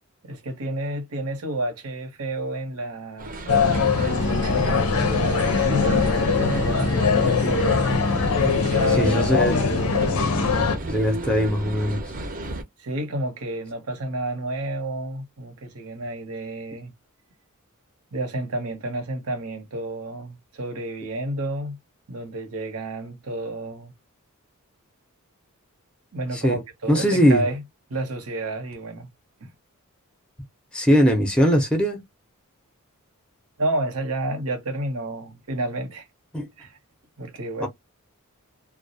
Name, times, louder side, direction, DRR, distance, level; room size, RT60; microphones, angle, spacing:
voice 1, 0.2-3.3 4.2-7.0 8.4-9.2 12.8-16.9 18.1-21.8 22.1-23.9 26.1-27.6 27.9-29.1 29.4-29.5 33.6-36.1 36.6-36.8 37.2-37.7, right 1 dB, 80° right, 0.8 m, -30 dB
sound 1, 3.2-12.6, right 1 dB, 40° right, 0.6 m, -33 dB
sound 2, 3.5-10.8, left 4 dB, 75° left, 0.6 m, -21 dB
voice 2, 7.2-7.6 8.9-9.8 10.9-12.0 26.3-26.6 26.9-27.4 30.7-32.0 36.3-36.5 37.6-37.7, equal, 5° left, 0.5 m, -21 dB
2.3 x 2.0 x 2.6 m
head